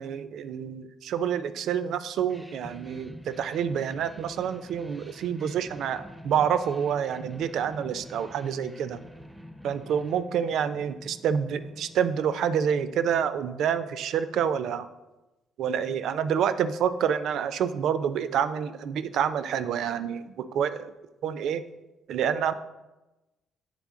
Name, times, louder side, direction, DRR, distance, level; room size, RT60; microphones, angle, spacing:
voice 1, 0.0-9.0 9.6-14.9 15.6-20.9 21.2-21.6 22.1-22.5, right 8 dB, 75° right, 12 dB, 0.3 m, -28 dB
sound 1, 2.3-12.8, equal, 5° right, 0.5 m, -48 dB
8.2 x 3.6 x 3.6 m, 1.0 s
cardioid pair, 90°, 0 cm